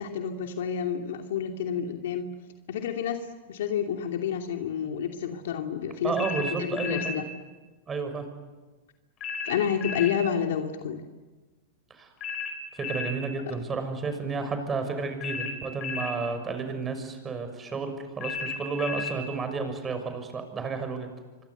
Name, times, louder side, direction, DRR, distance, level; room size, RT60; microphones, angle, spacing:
voice 1, 0.0-2.3 2.7-7.3 9.4-11.0, left 8 dB, 75° left, 4 dB, 2.7 m, -30 dB
voice 2, 6.0-7.2 7.9-8.3 11.9-12.1 12.7-21.1, right 4 dB, 20° right, 7 dB, 6.6 m, -32 dB
sound 1, 6.2-7.2 9.2-10.2 12.2-13.2 15.2-16.2 18.2-19.2, left 5 dB, 35° left, 7.2 m, -33 dB
28.0 x 25.0 x 8.3 m, 1.2 s
hypercardioid pair, 120°, 0 cm